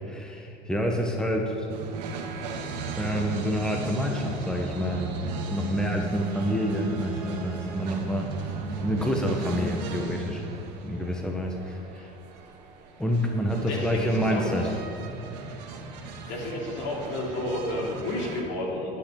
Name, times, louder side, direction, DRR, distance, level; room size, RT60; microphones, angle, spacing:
voice 1, 0.1-1.7 2.9-8.5 8.8-10.4 10.8-12.0 13.0-14.8, equal, 5° left, 1 dB, 1.6 m, -28 dB
sound 1, 1.7-18.4, right 3 dB, 80° right, 1.6 m, -36 dB
voice 2, 13.7-14.5 16.0-19.0, left 1 dB, 60° left, -2 dB, 3.5 m, -31 dB
11.5 x 6.9 x 9.4 m, 2.8 s
hypercardioid pair, 80°, 21 cm